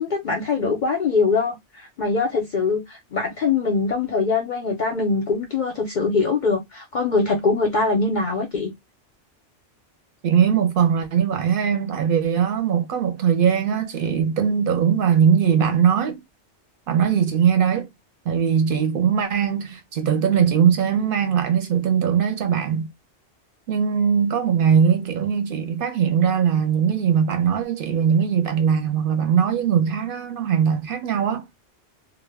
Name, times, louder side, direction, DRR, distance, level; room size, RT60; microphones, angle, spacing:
voice 1, 0.0-8.7, left 4 dB, 55° left, 0.5 m, -23 dB
voice 2, 10.2-16.2 16.9-17.9 18.3-22.9 23.7-31.5, right 7 dB, 60° right, 0.7 m, -20 dB
2.1 x 2.0 x 3.2 m
omnidirectional pair, 1.2 m